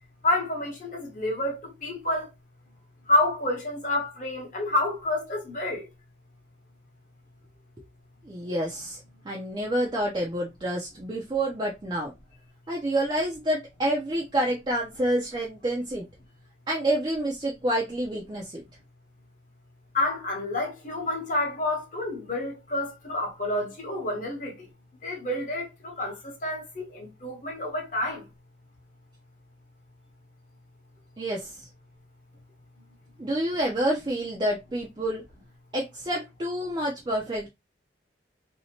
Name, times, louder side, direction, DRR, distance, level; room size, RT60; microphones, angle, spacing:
voice 1, 0.2-2.3 3.1-5.9 19.9-24.5 25.0-26.1 26.4-28.2, left 1 dB, 40° left, 0.9 m, -28 dB
voice 2, 8.3-9.0 9.3-12.1 12.7-16.0 16.7-18.6 31.2-31.7 33.2-35.2 35.7-37.5, right 1 dB, 25° right, 0.4 m, -28 dB
2.7 x 2.1 x 2.7 m
head